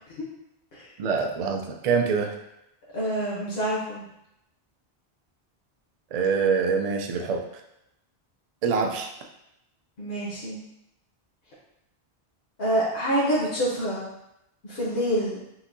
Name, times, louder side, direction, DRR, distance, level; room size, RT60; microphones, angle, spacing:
voice 1, 1.0-2.3 6.1-7.4 8.6-9.1, right 5 dB, 55° right, 3 dB, 0.5 m, -25 dB
voice 2, 2.9-4.0 10.0-10.6 12.6-14.1 14.6-15.4, right 1 dB, 70° left, -7 dB, 1.2 m, -26 dB
5.8 x 2.6 x 2.6 m, 0.83 s
omnidirectional pair, 1.0 m